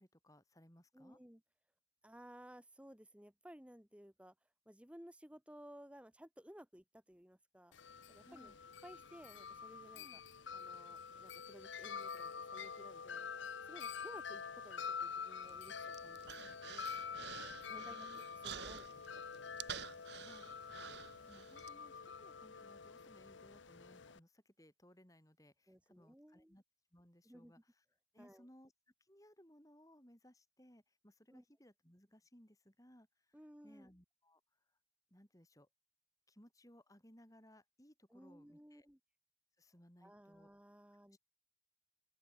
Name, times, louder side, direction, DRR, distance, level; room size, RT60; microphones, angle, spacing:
voice 1, 0.0-1.2 8.2-8.6 9.9-10.2 17.8-18.2 20.1-20.6 21.0-26.6 26.9-27.8 28.1-28.7 29.0-34.8 35.1-35.7 36.3-38.9 39.6-40.5 40.9-41.2, equal, 15° left, 4.8 m, -64 dB
voice 2, 0.9-1.4 2.0-4.3 4.7-7.7 8.1-8.5 8.8-10.2 10.5-13.3 13.6-16.9 17.4-19.4 25.7-26.5 27.2-27.5 28.2-28.4 31.3-31.4 33.3-33.9 38.1-39.0 40.0-41.2, equal, 5° right, 1.1 m, -58 dB
Wind chime, 7.7-24.2, left 6 dB, 75° left, 0.9 m, -47 dB
Human voice, 15.4-21.7, right 7 dB, 60° right, 1.6 m, -50 dB
open air
head